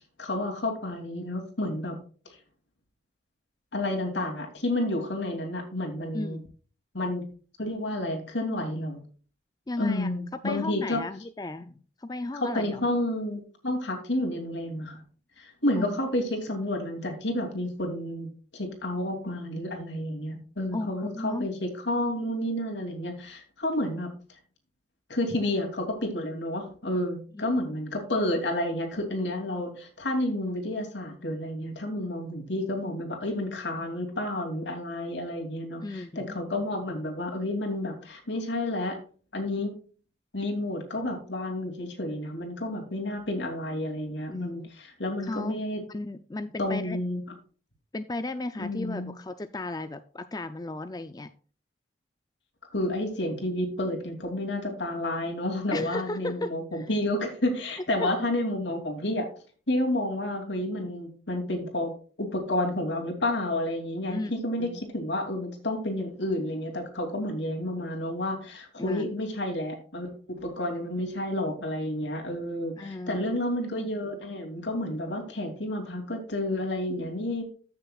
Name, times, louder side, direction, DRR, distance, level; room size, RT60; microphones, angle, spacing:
voice 1, 0.2-2.0 3.7-6.4 6.9-7.2 7.6-9.0 9.8-11.0 12.4-15.0 15.4-24.1 25.1-39.0 39.3-39.7 40.3-45.8 46.6-47.2 48.6-49.1 52.7-59.3 59.7-61.9 62.2-77.4, left 1 dB, 75° left, 2 dB, 2.8 m, -30 dB
voice 2, 6.1-6.5 9.7-10.1 10.4-12.8 15.8-16.0 20.7-21.5 27.3-27.5 35.8-36.4 44.3-44.7 45.2-45.6 45.9-47.0 47.9-51.3 55.7-56.9 58.0-58.1 64.1-64.3 64.6-64.8 68.8-69.1 72.8-73.2, left 2 dB, 20° left, 10 dB, 0.4 m, -35 dB
14.0 x 6.7 x 2.4 m, 0.40 s
head